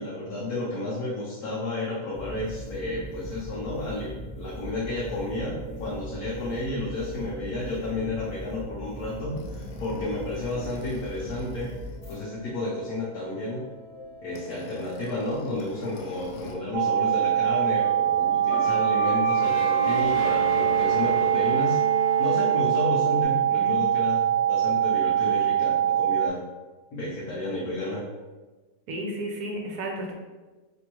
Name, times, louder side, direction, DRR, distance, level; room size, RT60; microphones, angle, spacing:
voice 1, 0.0-11.7 12.1-13.7 14.2-21.8 22.2-26.4 26.9-28.0, left 2 dB, 60° left, -6 dB, 1.2 m, -32 dB
sound 1, 2.1-12.2, right 1 dB, 15° left, 1.1 m, -39 dB
sound 2, 9.4-16.5 16.8-23.2, right 1 dB, 85° left, 1.4 m, -34 dB
sound 3, 16.7-26.3, right 10 dB, 85° right, 1.3 m, -23 dB
voice 2, 23.3-23.7 28.9-30.1, right 1 dB, 65° right, 1 dB, 1.1 m, -33 dB
5.2 x 2.6 x 3.0 m, 1.3 s
omnidirectional pair, 2.0 m